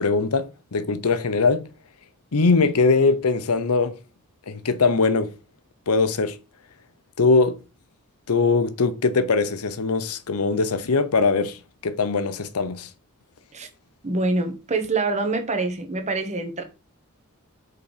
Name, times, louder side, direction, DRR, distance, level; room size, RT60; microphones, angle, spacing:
voice 1, 0.0-1.7 2.3-3.9 4.5-5.3 5.9-6.4 7.2-7.6 8.3-11.6 11.8-12.9, left 4 dB, 85° left, 0.7 m, -21 dB
voice 2, 14.0-16.6, right 3 dB, 30° right, 1.1 m, -25 dB
5.5 x 4.0 x 5.0 m
head